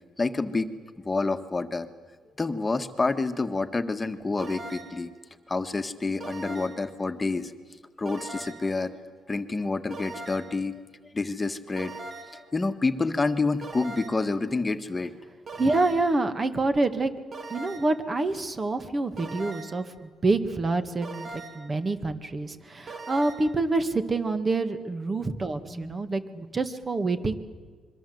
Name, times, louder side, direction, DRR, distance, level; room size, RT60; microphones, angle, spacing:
voice 1, 0.2-0.7 1.0-1.9 2.4-5.1 5.5-7.5 8.0-9.0 9.3-10.8 11.1-11.9 12.3-15.1 25.7-26.0, left 3 dB, 20° left, 9 dB, 1.6 m, -28 dB
sound 1, 4.4-5.1 6.2-6.9 8.1-8.8 9.9-10.6 11.8-12.5 13.6-14.3 15.5-16.2 17.3-18.1 19.2-19.9 21.0-21.8 22.9-23.6, right 3 dB, 45° right, 2.8 m, -40 dB
voice 2, 15.6-17.1 17.5-27.4, right 3 dB, 30° right, 9 dB, 2.0 m, -27 dB
26.0 x 23.0 x 8.0 m, 1.5 s
cardioid pair, 90°, 0 cm